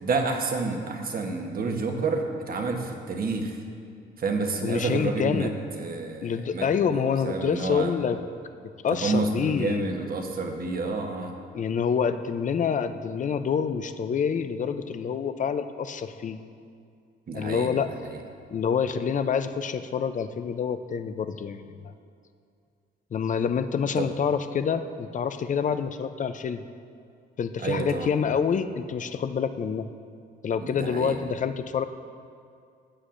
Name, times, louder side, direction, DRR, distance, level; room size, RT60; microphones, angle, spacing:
voice 1, 0.0-3.6 4.2-7.9 9.0-11.3 17.3-17.7 18.0-18.2 24.0-24.1 27.6-28.1 30.6-31.2, right 3 dB, 45° right, 3 dB, 1.1 m, -29 dB
voice 2, 4.6-5.5 6.2-8.2 8.8-9.9 11.5-16.4 17.3-17.9 18.5-21.9 23.1-26.6 27.4-29.9 30.4-31.9, left 6 dB, 40° left, 10 dB, 0.5 m, -27 dB
15.0 x 8.2 x 2.6 m, 2.3 s
cardioid pair, 90°, 20 cm